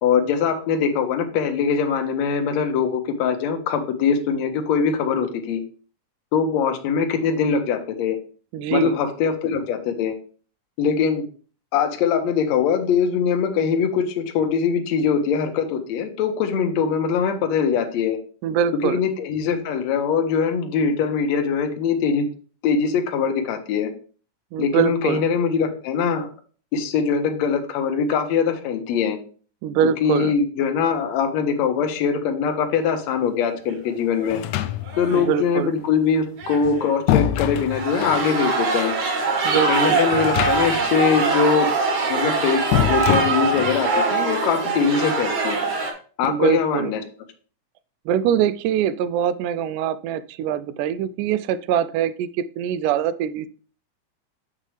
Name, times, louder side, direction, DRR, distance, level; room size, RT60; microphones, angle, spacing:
voice 1, 0.0-5.6 6.3-8.2 8.7-10.2 10.8-11.2 11.7-18.2 18.8-22.3 22.6-23.9 24.6-26.3 26.7-29.2 30.0-34.4 35.0-38.9 39.7-41.7 42.1-42.6 42.9-45.6 46.2-47.0, left 6 dB, 65° left, 5 dB, 1.9 m, -22 dB
voice 2, 8.5-8.9 18.4-19.0 24.5-25.2 29.6-30.3 35.1-35.7 39.4-40.0 46.3-46.9 48.1-53.5, right 9 dB, 80° right, 14 dB, 2.0 m, -23 dB
sound 1, 33.7-33.9 34.1-34.2 34.9-35.3 36.4-36.9 37.5-45.9, right 4 dB, 55° right, 2.7 m, -23 dB
sound 2, 34.3-35.2 36.4-38.3 40.1-40.9 41.2-41.3 42.7-43.8, left 12 dB, 85° left, 1.7 m, -24 dB
7.4 x 6.2 x 3.3 m, 0.40 s
omnidirectional pair, 3.9 m